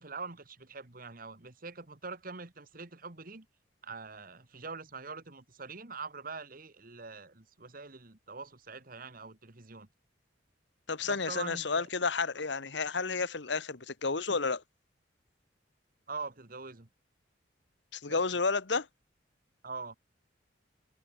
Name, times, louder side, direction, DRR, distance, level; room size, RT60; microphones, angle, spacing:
voice 1, 0.0-3.5 3.8-9.9 11.0-11.9 16.1-16.9 18.1-18.2 19.6-20.0, right 4 dB, 45° right, 1.7 m, -44 dB
voice 2, 10.9-14.6 17.9-18.9, left 4 dB, 65° left, 1.2 m, -31 dB
head